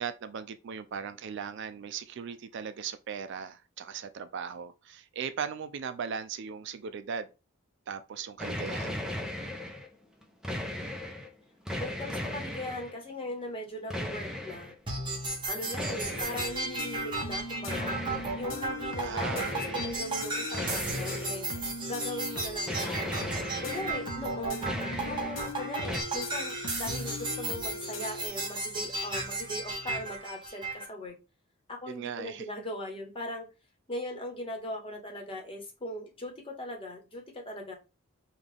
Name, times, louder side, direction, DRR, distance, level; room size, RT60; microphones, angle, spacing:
voice 1, 0.0-7.3 7.9-9.1 19.0-19.9 23.8-23.9 31.9-32.4, right 6 dB, 55° right, 0.4 m, -38 dB
sound 1, 8.4-9.9 10.2-11.3 11.7-12.9 13.9-14.7 15.7-16.6 17.7-18.5 19.2-20.0 20.5-21.7 22.7-24.1 24.4-25.5 25.8-26.0, left 1 dB, 5° right, 0.6 m, -36 dB
voice 2, 11.8-14.7 15.5-18.0 18.3-21.5 21.9-23.0 23.6-24.7 25.0-31.1 31.8-33.5 33.9-37.7, left 1 dB, 25° left, 1.1 m, -39 dB
sound 2, 14.9-30.8, right 2 dB, 25° right, 1.1 m, -35 dB
sound 3, 16.1-28.3, left 2 dB, 70° left, 0.7 m, -41 dB
5.6 x 2.4 x 3.3 m
head